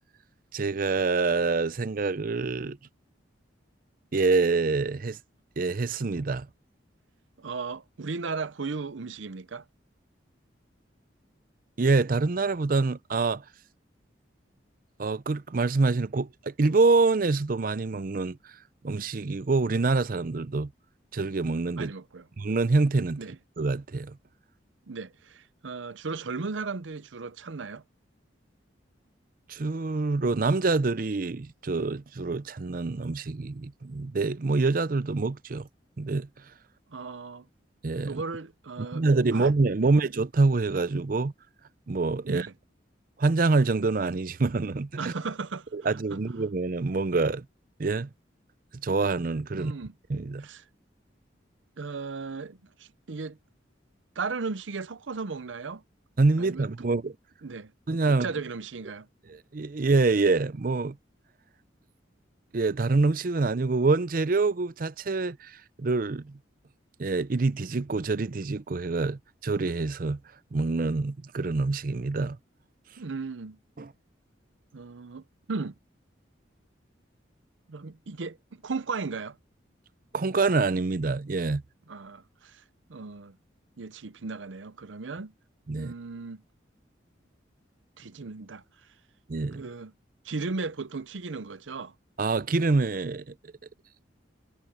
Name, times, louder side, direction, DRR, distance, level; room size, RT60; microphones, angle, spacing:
voice 1, 0.5-2.8 4.1-5.2 5.6-6.5 11.8-13.4 15.0-18.4 18.8-20.7 21.1-21.9 22.4-23.2 23.6-24.2 29.5-35.7 36.0-36.3 37.8-38.2 38.8-41.3 41.9-42.5 43.2-45.1 45.7-47.4 47.8-48.1 48.8-49.7 50.1-50.5 56.2-57.1 57.9-58.3 59.3-61.0 62.5-65.5 65.8-66.3 67.0-70.2 70.5-72.4 73.8-73.9 80.1-81.6 85.7-85.9 89.3-89.6 92.2-93.2, right 3 dB, 45° right, 0.6 m, -26 dB
voice 2, 7.4-9.6 21.7-22.3 23.2-23.4 24.9-27.8 36.9-37.5 38.0-39.5 39.8-39.9 42.2-42.5 45.0-46.2 49.5-49.9 50.4-50.6 51.8-53.4 54.2-55.8 56.4-56.9 57.4-57.7 58.0-59.1 73.0-73.6 74.7-75.7 77.7-79.4 81.9-82.6 82.9-83.4 83.8-85.3 85.7-86.4 88.0-88.6 89.5-89.9 90.2-91.9, right 4 dB, 85° right, 0.7 m, -36 dB
head